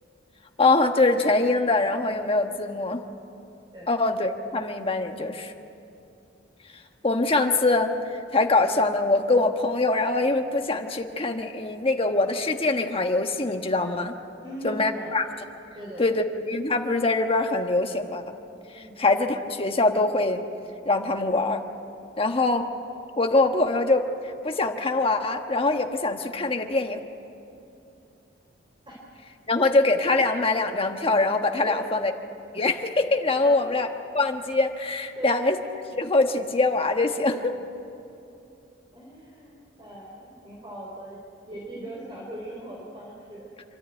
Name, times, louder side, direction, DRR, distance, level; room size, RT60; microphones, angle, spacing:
voice 1, 0.6-3.0 3.9-5.5 7.0-7.9 8.3-14.1 14.6-15.3 16.0-18.2 18.7-20.4 20.8-21.6 22.2-22.7 23.2-24.1 24.4-27.0 29.5-32.1 32.5-33.9 34.1-35.6 36.0-37.5, left 2 dB, 30° left, 5 dB, 1.3 m, -23 dB
voice 2, 14.4-15.1 15.7-16.2 18.7-18.9 28.9-29.0 31.6-31.9 33.4-33.5 35.2-35.5 38.9-41.2 41.5-43.5, right 1 dB, 25° right, -4 dB, 3.5 m, -39 dB
27.5 x 12.5 x 9.0 m, 2.7 s
head